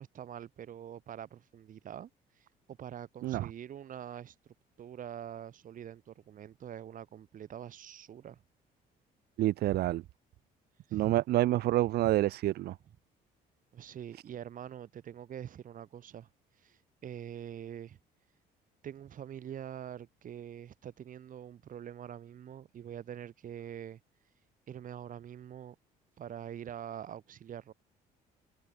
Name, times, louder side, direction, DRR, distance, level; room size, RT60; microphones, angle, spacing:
voice 1, 0.0-8.4 10.9-11.0 12.8-13.0 13.7-16.3 16.5-18.0 18.8-24.0 24.7-25.7 26.2-27.7, right 9 dB, 55° right, 4.7 m, -45 dB
voice 2, 9.4-10.0 10.9-12.7, right 15 dB, 70° right, 0.8 m, -28 dB
cardioid pair, 110°, 17 cm